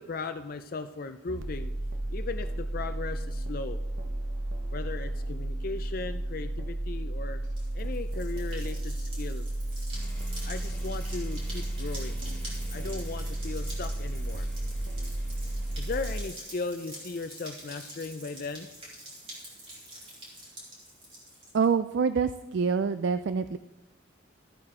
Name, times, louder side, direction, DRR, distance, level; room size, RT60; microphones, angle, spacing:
voice 1, 0.0-1.7 2.1-3.8 4.7-7.4 7.7-9.5 10.4-12.2 12.7-14.5 15.8-18.7, left 3 dB, 45° left, 9 dB, 0.5 m, -37 dB
sound 1, 1.3-16.2, right 1 dB, 85° right, 0.9 m, -33 dB
sound 2, 7.4-21.7, right 1 dB, 30° right, 3.9 m, -46 dB
sound 3, 9.9-16.0, left 1 dB, 10° left, 3.6 m, -48 dB
voice 2, 21.5-23.6, right 5 dB, 60° right, 12 dB, 0.3 m, -26 dB
14.5 x 8.8 x 3.7 m, 1.1 s
head